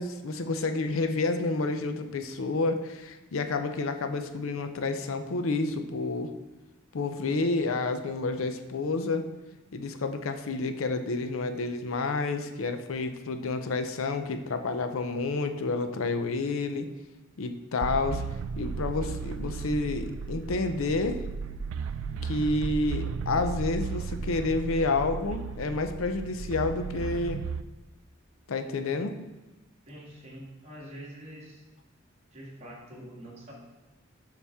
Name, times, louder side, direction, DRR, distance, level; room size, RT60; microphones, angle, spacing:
voice 1, 0.0-6.3 6.9-9.3 9.7-16.9 17.4-18.2 18.6-21.2 22.2-27.4 28.5-29.1, left 3 dB, 90° left, 8 dB, 0.6 m, -29 dB
sound 1, 17.8-27.6, right 5 dB, 90° right, 0.3 m, -35 dB
voice 2, 29.9-31.6 32.3-33.5, equal, 35° right, -4 dB, 1.9 m, -45 dB
7.0 x 5.8 x 3.5 m, 1.2 s
head